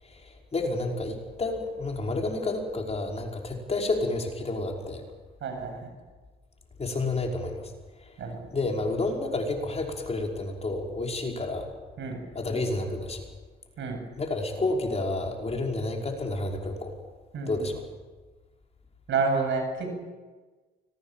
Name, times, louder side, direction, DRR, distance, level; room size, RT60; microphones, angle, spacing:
voice 1, 0.0-5.0 6.8-7.7 8.0-8.2 8.5-11.7 12.3-13.2 14.2-16.9 17.5-17.8, left 2 dB, 30° left, 0 dB, 5.4 m, -30 dB
voice 2, 5.4-5.9 8.2-8.4 11.2-11.3 12.0-12.2 13.8-14.0 17.3-17.7 19.1-19.9, right 4 dB, 70° right, 4 dB, 7.8 m, -29 dB
25.0 x 21.0 x 7.5 m, 1.3 s
cardioid pair, 90°, 20 cm